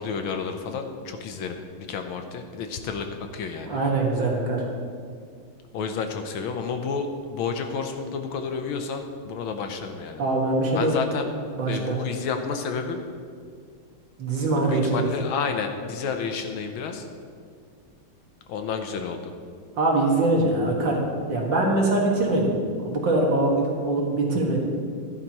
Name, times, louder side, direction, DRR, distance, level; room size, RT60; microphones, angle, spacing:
voice 1, 0.0-3.8 5.7-10.2 10.7-11.3 11.7-13.0 14.7-17.1 18.5-19.3, left 5 dB, 75° left, 6 dB, 1.5 m, -30 dB
voice 2, 3.7-4.6 10.2-11.0 11.6-12.0 14.2-15.0 19.8-21.0 21.3-22.6 22.8-24.6, right 2 dB, 55° right, -2 dB, 2.3 m, -23 dB
15.0 x 11.5 x 3.0 m, 2.1 s
omnidirectional pair, 2.4 m